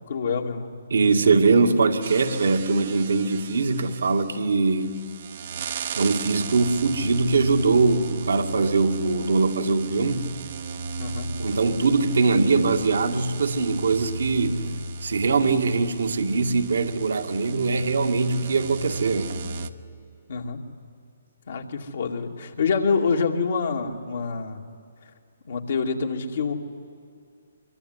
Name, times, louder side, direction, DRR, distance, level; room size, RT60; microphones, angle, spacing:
voice 1, 0.1-0.7 11.0-11.3 20.3-20.6 21.5-24.6 25.5-26.5, left 5 dB, 65° left, 2.5 m, -26 dB
voice 2, 0.9-5.1 6.0-10.3 11.4-14.7 15.0-19.4, right 4 dB, 70° right, 2.1 m, -22 dB
sound 1, 2.0-19.7, right 3 dB, 55° right, 1.2 m, -35 dB
24.5 x 23.0 x 9.9 m
figure-of-eight pair, 135°, 0 cm